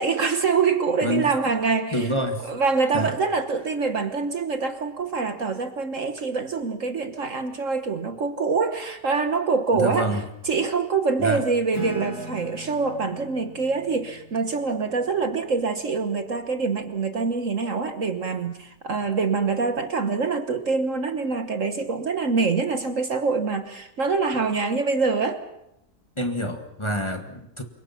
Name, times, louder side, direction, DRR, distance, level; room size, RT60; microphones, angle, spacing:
voice 1, 0.0-2.1 2.4-10.2 10.4-25.4, right 4 dB, 50° right, 8 dB, 1.5 m, -25 dB
voice 2, 1.0-1.3 1.9-2.5 2.9-3.2 9.7-10.2 11.2-11.4 19.0-19.1 26.2-27.6, equal, 15° left, 4 dB, 1.8 m, -27 dB
Acoustic guitar / Strum, 11.7-16.7, equal, 50° left, 5.4 m, -42 dB
28.0 x 24.0 x 5.8 m, 0.82 s
omnidirectional pair, 1.8 m